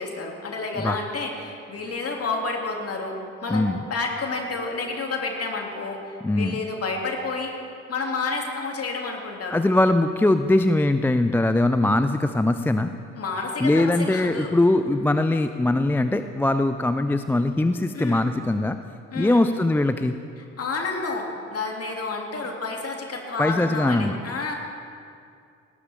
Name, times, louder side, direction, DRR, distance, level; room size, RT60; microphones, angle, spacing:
voice 1, 0.0-3.2 3.4-7.5 7.9-9.6 13.1-14.5 17.9-18.2 19.1-19.5 20.4-24.5, left 3 dB, 40° left, 1 dB, 2.8 m, -30 dB
voice 2, 6.2-6.6 9.5-12.9 13.6-18.8 19.1-20.2 23.4-24.2, left 2 dB, 5° left, 10 dB, 0.4 m, -21 dB
18.0 x 14.5 x 3.6 m, 2.4 s
figure-of-eight pair, 50°, 38 cm